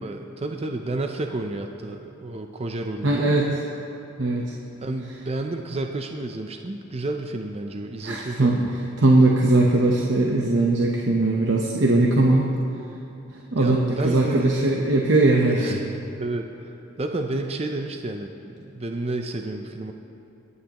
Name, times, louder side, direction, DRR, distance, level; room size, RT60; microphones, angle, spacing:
voice 1, 0.0-3.3 4.8-8.9 13.6-14.6 15.6-15.8 16.2-19.9, right 2 dB, 30° right, 4 dB, 0.5 m, -31 dB
voice 2, 3.0-3.5 4.2-4.5 8.0-8.6 9.0-12.5 13.5-15.8, right 2 dB, 65° right, -1 dB, 0.9 m, -20 dB
24.5 x 9.7 x 3.0 m, 2.9 s
head